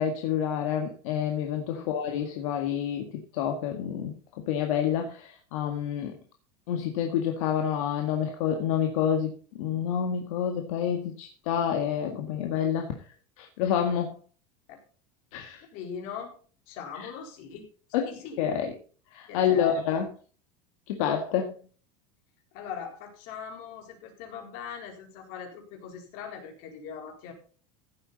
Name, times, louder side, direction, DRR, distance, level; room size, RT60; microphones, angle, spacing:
voice 1, 0.0-3.1 3.3-6.2 6.7-9.3 9.6-12.9 13.4-14.2 15.3-15.6 17.9-18.1 18.4-18.7 19.1-20.1 20.9-21.5, left 8 dB, 75° left, 3 dB, 1.9 m, -28 dB
voice 2, 15.7-16.3 16.7-17.7 18.0-18.5 19.3-19.8 22.5-27.3, left 7 dB, 55° left, 2 dB, 4.2 m, -40 dB
15.5 x 8.0 x 4.1 m, 0.40 s
supercardioid pair, 155°, 17 cm